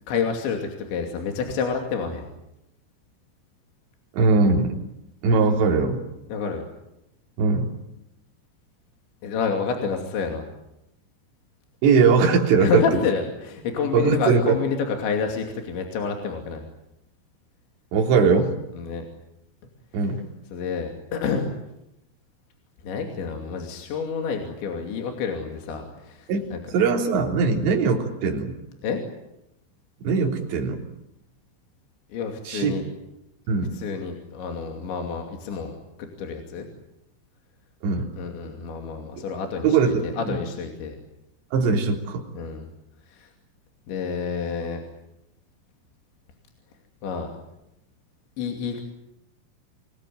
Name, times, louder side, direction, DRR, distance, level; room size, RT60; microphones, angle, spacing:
voice 1, 0.1-2.3 6.3-6.7 9.2-10.5 12.6-16.6 18.7-19.0 20.0-20.2 20.5-21.5 22.8-26.6 27.5-27.6 28.8-29.0 32.1-32.8 33.7-36.7 38.2-41.0 42.4-42.7 43.1-43.3 43.9-44.8 47.0-47.3 48.4-48.8, left 5 dB, 65° left, 3 dB, 4.8 m, -29 dB
voice 2, 4.1-4.7 5.2-6.0 7.4-7.7 11.8-12.8 13.9-14.4 17.9-18.5 19.9-20.2 26.3-26.5 26.7-28.5 30.0-30.8 32.5-32.7 33.5-33.7 37.8-38.1 39.6-40.4 41.5-42.2, right 4 dB, 60° right, 0 dB, 5.7 m, -20 dB
28.0 x 20.5 x 9.4 m, 0.86 s
omnidirectional pair, 5.9 m